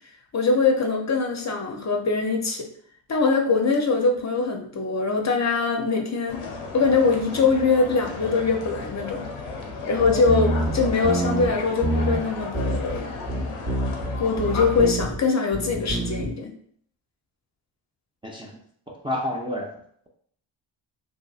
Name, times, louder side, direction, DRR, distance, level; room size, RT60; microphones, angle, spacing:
voice 1, 0.3-2.7 3.1-6.4 6.7-9.3 9.9-13.1 14.2-16.5, left 4 dB, 35° left, 2 dB, 0.5 m, -22 dB
sound 1, 6.3-14.9, left 3 dB, 90° left, 0.6 m, -34 dB
sound 2, 10.0-11.5 11.8-12.2 12.5-13.0 13.3-15.2 15.5-16.3, right 1 dB, 35° right, 0.9 m, -26 dB
voice 2, 18.2-18.6 18.9-19.8, left 1 dB, 10° right, -2 dB, 0.4 m, -30 dB
2.5 x 2.4 x 2.4 m, 0.63 s
supercardioid pair, 40°, 49 cm